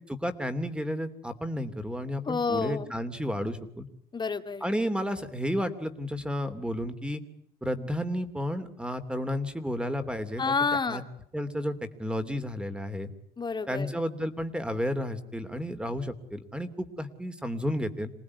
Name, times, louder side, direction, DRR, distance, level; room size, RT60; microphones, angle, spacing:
voice 1, 0.1-3.9 4.6-7.2 7.6-10.5 10.9-11.0 11.3-13.1 13.7-18.1, equal, 5° right, 10 dB, 3.1 m, -32 dB
voice 2, 2.3-2.9 4.1-4.6 10.4-11.0 13.4-13.9, left 4 dB, 25° left, 8 dB, 2.3 m, -29 dB
27.5 x 19.0 x 9.7 m, 0.68 s
cardioid pair, 110°, 17 cm